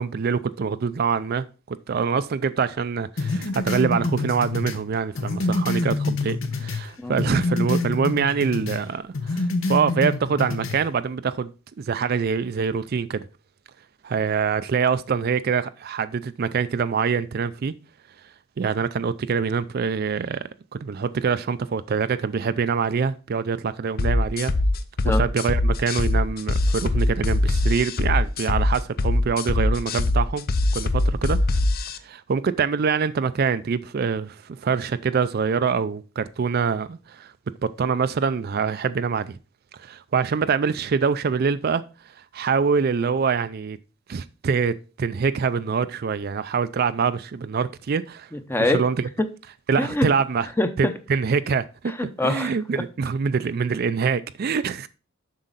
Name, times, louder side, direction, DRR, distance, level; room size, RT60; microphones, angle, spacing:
voice 1, 0.0-11.5 11.8-13.3 14.0-17.7 18.6-24.5 25.0-30.5 30.7-31.6 32.0-37.3 37.6-39.4 39.7-41.8 42.3-43.8 44.1-48.3 48.7-49.1 49.7-50.5 50.8-51.9 52.2-54.9, right 5 dB, 50° right, 0.4 m, -25 dB
sound 1, 3.2-6.9 7.2-8.8 9.1-10.8, left 2 dB, 75° left, 1.0 m, -26 dB
sound 2, 24.0-32.0, left 2 dB, 50° left, 0.6 m, -22 dB
voice 2, 48.3-48.8 49.7-50.1 50.6-50.9 51.9-52.5, left 1 dB, 10° left, 0.7 m, -24 dB
7.6 x 6.2 x 4.0 m
head